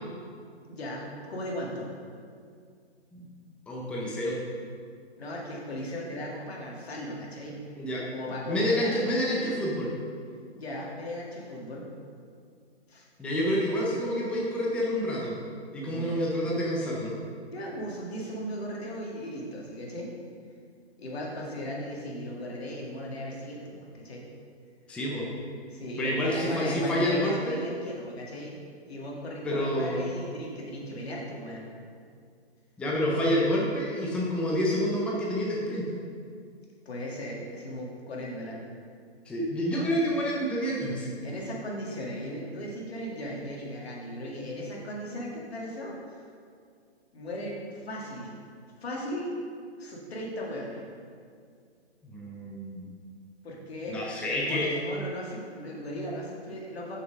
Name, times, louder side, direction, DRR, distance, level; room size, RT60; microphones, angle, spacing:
voice 1, 0.7-1.9 5.2-7.6 8.1-9.0 10.5-11.9 12.9-13.1 15.9-16.2 17.5-20.2 21.0-24.2 25.7-28.6 28.9-31.7 36.9-38.6 41.2-46.2 47.1-48.3 48.8-49.3 49.8-50.8 53.4-54.0 54.3-57.0, equal, 65° left, -3 dB, 2.0 m, -37 dB
voice 2, 3.7-4.4 7.8-8.0 8.5-9.9 13.2-15.3 15.7-17.1 24.9-25.3 26.0-27.6 29.4-30.1 32.8-35.9 39.3-41.1 52.0-52.9 53.9-54.7, equal, 5° left, -4 dB, 0.6 m, -28 dB
6.4 x 6.0 x 5.2 m, 2.2 s
figure-of-eight pair, 130°, 33 cm